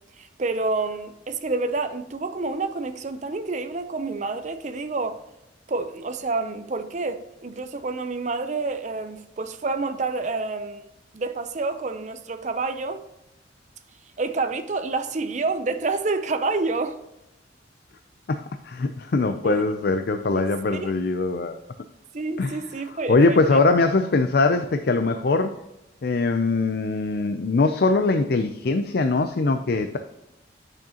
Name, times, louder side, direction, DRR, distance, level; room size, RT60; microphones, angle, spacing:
voice 1, 0.2-5.2 5.7-10.8 11.1-13.0 14.2-17.0 19.4-19.6 20.3-20.6 20.8-20.9 22.1-23.6, right 3 dB, 40° right, 0.5 m, -28 dB
voice 2, 18.3-21.6 22.4-22.6 23.1-25.6 26.0-30.0, left 3 dB, 55° left, 0.4 m, -22 dB
8.6 x 6.3 x 2.9 m
head